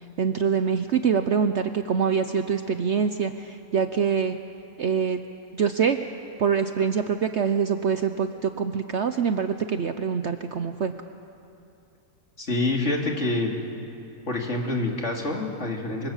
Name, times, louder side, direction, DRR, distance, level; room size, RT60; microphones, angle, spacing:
voice 1, 0.2-4.4 4.8-5.2 5.5-6.1 6.4-10.9, right 6 dB, 55° right, 8 dB, 0.9 m, -24 dB
voice 2, 12.4-13.5 14.3-16.1, left 2 dB, 45° left, 0 dB, 3.2 m, -26 dB
25.0 x 24.5 x 7.3 m, 2.7 s
omnidirectional pair, 1.7 m